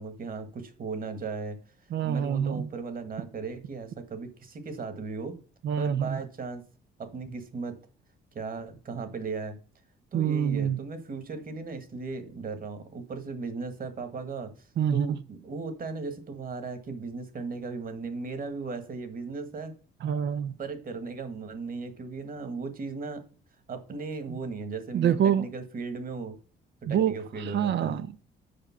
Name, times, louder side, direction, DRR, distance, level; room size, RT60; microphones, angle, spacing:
voice 1, 0.0-1.6 2.0-5.3 5.8-6.6 7.0-7.8 8.3-9.6 10.1-19.7 20.6-23.2 23.7-26.4 26.8-28.0, right 4 dB, 45° right, 1.6 m, -37 dB
voice 2, 1.9-2.7 5.6-6.2 10.1-10.8 14.8-15.2 20.0-20.6 24.3-24.4 24.9-25.5 26.9-28.2, right 9 dB, 65° right, 0.5 m, -26 dB
5.3 x 5.2 x 5.7 m
cardioid pair, 90°, 20 cm